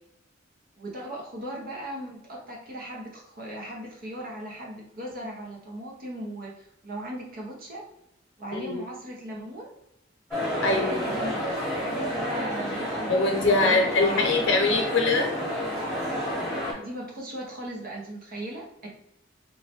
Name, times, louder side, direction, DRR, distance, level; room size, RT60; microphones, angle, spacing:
voice 1, 0.8-7.8 8.4-9.7 10.9-11.4 11.7-14.2 16.4-18.9, right 1 dB, 50° right, -2 dB, 0.6 m, -38 dB
sound 1, 10.3-16.7, equal, ahead, 1.1 m, -30 dB
voice 2, 13.1-15.3, left 3 dB, 75° left, 1 dB, 0.7 m, -23 dB
3.0 x 2.2 x 2.8 m, 0.81 s
head